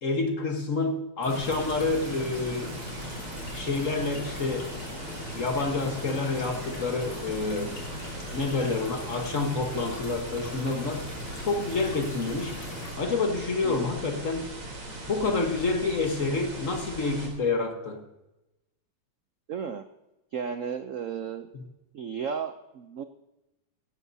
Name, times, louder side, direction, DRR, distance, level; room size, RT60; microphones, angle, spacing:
voice 1, 0.0-2.7 3.5-4.7 5.3-7.8 8.3-11.1 11.4-12.6 13.0-14.4 15.1-18.0 21.5-21.6, left 3 dB, 45° left, 4 dB, 1.5 m, -28 dB
sound 1, 1.2-12.9, left 2 dB, 85° left, 3.9 m, -40 dB
sound 2, 1.3-17.3, right 2 dB, 70° right, 4.3 m, -40 dB
voice 2, 19.5-19.8 20.3-21.5 21.9-23.0, right 7 dB, 90° right, 8 dB, 0.7 m, -34 dB
17.0 x 15.5 x 2.7 m, 0.96 s
omnidirectional pair, 2.2 m